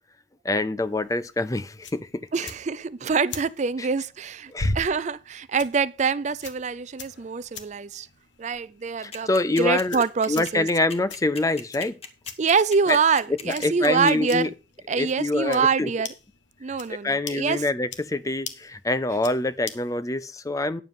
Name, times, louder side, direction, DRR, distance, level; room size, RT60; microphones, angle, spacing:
voice 1, 0.4-2.3 3.8-3.9 4.5-4.7 9.0-12.0 12.9-13.0 13.5-14.5 14.9-15.9 17.0-20.8, left 2 dB, 15° left, 0.5 m, -25 dB
sound 1, 0.8-20.0, left 2 dB, 70° left, 1.3 m, -40 dB
voice 2, 2.3-8.1 8.4-9.3 9.6-10.7 12.4-14.5 14.9-16.1 16.6-17.6, right 5 dB, 40° right, 0.4 m, -25 dB
sound 2, 9.1-14.3, left 4 dB, 30° left, 1.3 m, -37 dB
9.7 x 7.2 x 5.4 m
head